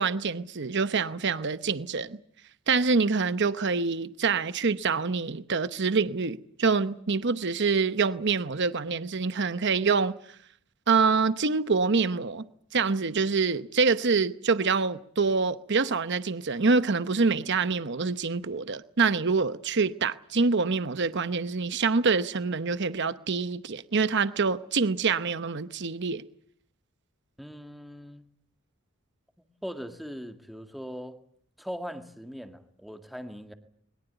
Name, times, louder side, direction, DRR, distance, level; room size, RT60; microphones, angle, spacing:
voice 1, 0.0-2.2 2.7-10.1 10.9-12.4 12.7-26.2, right 4 dB, 55° right, 0.9 m, -26 dB
voice 2, 27.4-28.3 29.6-31.2 31.6-33.5, equal, ahead, 1.8 m, -40 dB
22.0 x 21.0 x 8.1 m
head